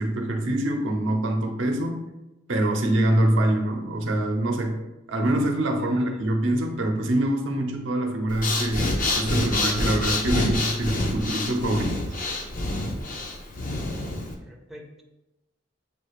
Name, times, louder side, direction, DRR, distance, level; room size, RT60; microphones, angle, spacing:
voice 1, 0.0-2.1 2.5-4.8 5.1-12.0, right 1 dB, 80° right, 3 dB, 0.7 m, -24 dB
voice 2, 5.8-6.2 14.4-15.0, equal, ahead, -1 dB, 0.5 m, -46 dB
Breathing, 8.3-14.3, left 2 dB, 45° left, 0.6 m, -27 dB
7.1 x 2.4 x 3.1 m, 0.99 s
head